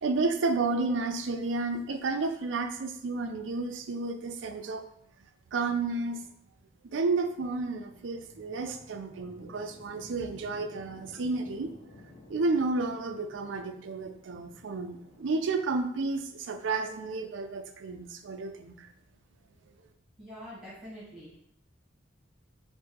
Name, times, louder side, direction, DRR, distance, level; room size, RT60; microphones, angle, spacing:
voice 1, 0.0-4.8 5.5-6.2 6.9-11.7 12.3-18.9, right 3 dB, 70° right, 7 dB, 0.4 m, -31 dB
sound 1, 7.1-19.9, left 2 dB, 35° left, 1.3 m, -55 dB
voice 2, 20.2-21.4, equal, ahead, -9 dB, 1.4 m, -45 dB
3.5 x 2.6 x 4.6 m, 0.69 s
head